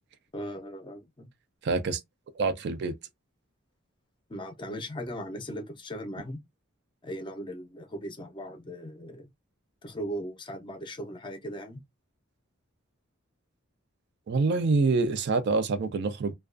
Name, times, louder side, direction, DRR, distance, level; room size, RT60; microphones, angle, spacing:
voice 1, 0.3-1.3 4.3-6.4 7.0-9.3 9.8-11.8, equal, 25° left, 0.5 m, -38 dB
voice 2, 1.6-2.0 2.4-2.9 14.3-16.3, right 3 dB, 55° right, 0.4 m, -26 dB
2.3 x 2.2 x 2.4 m
head